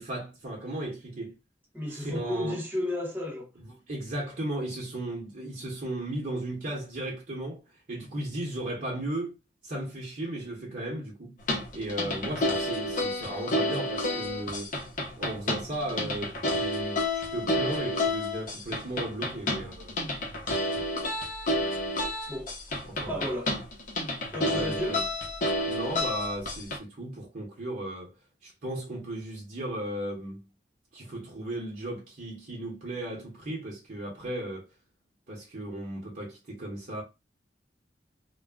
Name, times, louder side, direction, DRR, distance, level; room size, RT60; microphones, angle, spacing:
voice 1, 0.0-1.3 2.0-2.6 3.9-7.6 7.9-9.3 9.6-11.4 11.7-14.7 15.2-19.9 20.7-20.9 22.9-23.2 24.5-25.0 25.7-28.1 28.4-30.4 30.9-34.7 35.3-37.0, right 1 dB, 50° right, 0.8 m, -35 dB
voice 2, 1.7-3.5 22.3-22.5 23.0-23.5 24.3-25.0, left 1 dB, 10° right, 0.8 m, -33 dB
sound 1, 11.4-26.8, left 1 dB, 45° left, 0.7 m, -30 dB
2.2 x 2.0 x 3.5 m
head